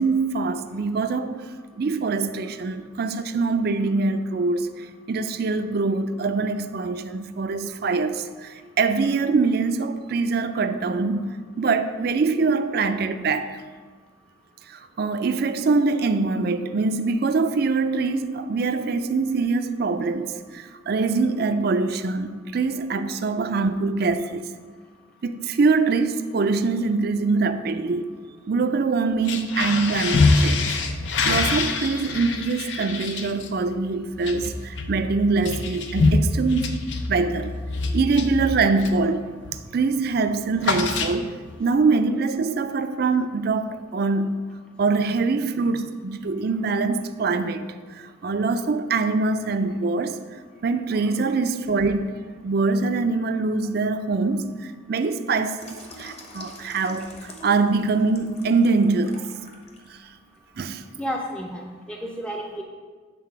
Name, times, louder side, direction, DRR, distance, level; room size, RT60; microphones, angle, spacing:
voice 1, 0.0-1.4 1.8-13.6 14.7-24.4 25.2-28.1 28.5-30.8 31.2-36.7 37.1-37.5 37.9-39.3 39.7-41.3 41.6-44.5 44.8-47.7 48.2-50.2 50.6-52.1 52.4-59.2 60.6-60.9, right 4 dB, 55° right, 0.4 m, -24 dB
sound 1, 29.1-39.1 39.4-39.7 40.0-41.6, left 3 dB, 75° left, 0.6 m, -25 dB
Water tap faucet / Sink (filling or washing), 55.6-59.9 60.3-60.5, left 1 dB, 35° left, 1.0 m, -45 dB
voice 2, 61.0-62.6, equal, 5° left, 0.5 m, -31 dB
8.5 x 4.0 x 5.9 m
head